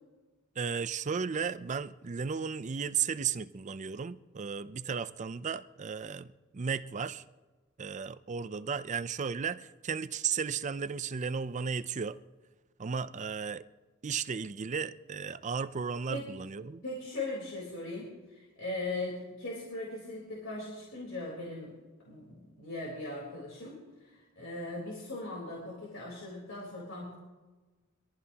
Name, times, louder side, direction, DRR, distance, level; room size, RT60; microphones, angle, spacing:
voice 1, 0.6-7.2 7.8-12.2 12.8-13.7 14.0-16.8, right 6 dB, 35° right, 0.5 m, -34 dB
voice 2, 16.8-21.7 22.1-27.2, left 2 dB, 65° left, 4.0 m, -39 dB
24.0 x 14.5 x 2.9 m
head